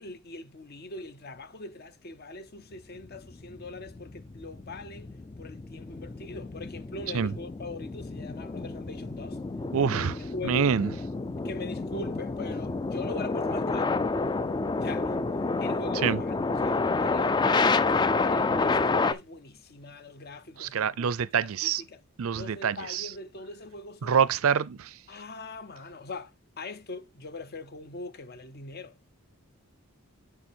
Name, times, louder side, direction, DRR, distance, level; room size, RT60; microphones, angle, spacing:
voice 1, 0.0-9.4 10.3-10.8 11.4-13.9 14.8-15.2 15.6-16.4 16.6-21.1 21.4-22.0 22.3-24.2 25.1-29.0, left 2 dB, 45° left, 0.7 m, -41 dB
sound 1, 3.0-19.1, left 3 dB, 20° left, 0.3 m, -29 dB
voice 2, 9.7-10.9 16.0-16.2 20.6-21.8 22.2-23.1 24.0-24.9, right 7 dB, 70° right, 0.5 m, -26 dB
7.2 x 4.9 x 4.3 m
head